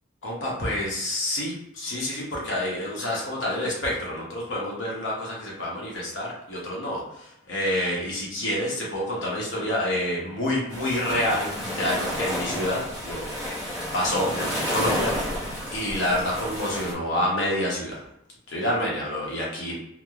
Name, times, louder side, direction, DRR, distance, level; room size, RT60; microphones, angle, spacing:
voice 1, 0.2-13.7 13.9-15.1 15.7-18.0 18.5-19.8, left 1 dB, 60° left, -4 dB, 0.8 m, -28 dB
sound 1, 10.7-16.9, equal, 10° left, 0.5 m, -31 dB
2.8 x 2.0 x 2.3 m, 0.81 s
head